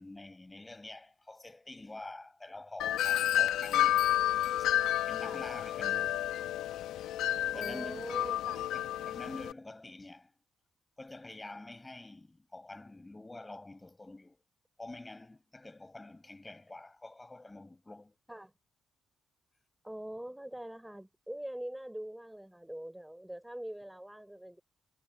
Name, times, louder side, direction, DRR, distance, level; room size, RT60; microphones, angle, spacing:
voice 1, 0.0-4.0 4.6-4.7 5.1-6.3 7.5-8.1 8.7-10.3 11.0-14.4 14.8-18.2, left 2 dB, 15° left, 6.4 m, -47 dB
Wind chime, 2.8-9.5, left 12 dB, 85° left, 1.0 m, -30 dB
voice 2, 7.5-8.6 18.3-18.5 19.8-24.6, right 1 dB, 5° right, 3.9 m, -43 dB
cardioid pair, 90°, 0 cm